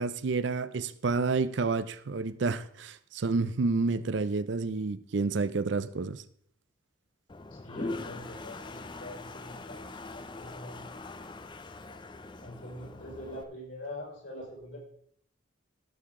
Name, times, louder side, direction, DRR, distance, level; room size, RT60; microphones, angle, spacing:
voice 1, 0.0-6.2, right 4 dB, 60° right, 0.5 m, -29 dB
Toilet flush, 7.3-13.4, left 2 dB, 25° left, 0.5 m, -42 dB
voice 2, 7.5-10.9 12.4-14.8, left 1 dB, 60° left, 5.5 m, -44 dB
17.0 x 6.7 x 3.7 m
head